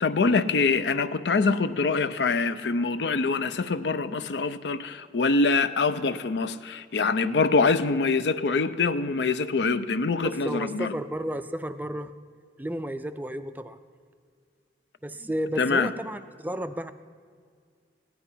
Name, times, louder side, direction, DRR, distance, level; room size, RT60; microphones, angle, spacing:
voice 1, 0.0-10.9 15.6-15.9, left 4 dB, 75° left, 13 dB, 0.6 m, -24 dB
voice 2, 10.2-12.1 12.6-13.8 15.0-16.9, equal, 10° right, 11 dB, 0.3 m, -32 dB
16.5 x 10.5 x 5.6 m, 2.1 s
head